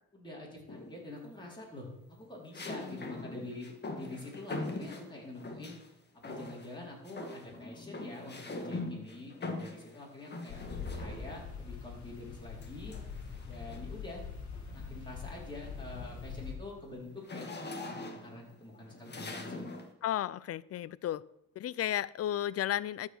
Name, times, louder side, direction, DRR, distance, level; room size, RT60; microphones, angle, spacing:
voice 1, 0.1-5.8 6.1-12.9 13.5-14.2 14.7-17.5 17.8-19.7, left 2 dB, 15° left, -3 dB, 4.3 m, -46 dB
sound 1, 0.7-1.2 2.5-5.9 6.2-6.8 7.0-11.5 12.6-14.0 14.5-14.8 15.1-19.9, left 2 dB, 35° left, 1.8 m, -43 dB
sound 2, 10.5-16.5, left 5 dB, 70° left, 2.5 m, -43 dB
voice 2, 20.0-21.2 21.6-23.1, left 11 dB, 55° left, 20 dB, 0.4 m, -33 dB
13.5 x 5.7 x 6.4 m, 0.86 s
cardioid pair, 90°, 30 cm